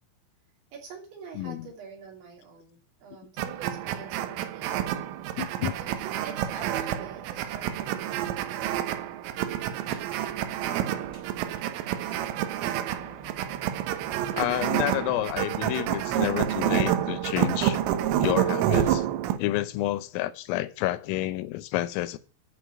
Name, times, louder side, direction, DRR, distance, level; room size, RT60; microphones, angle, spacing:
voice 1, 0.7-4.8 5.8-8.9, right 5 dB, 65° right, 5.2 m, -45 dB
voice 2, 1.4-1.7 5.4-5.8 14.3-17.8 18.2-19.1 19.4-22.2, left 15 dB, 85° left, 3.5 m, -29 dB
sound 1, 3.4-19.4, right 11 dB, 80° right, 3.5 m, -28 dB
sound 2, 9.8-10.2 10.7-19.0, right 2 dB, 30° right, 1.4 m, -47 dB
14.0 x 4.9 x 8.6 m
omnidirectional pair, 5.9 m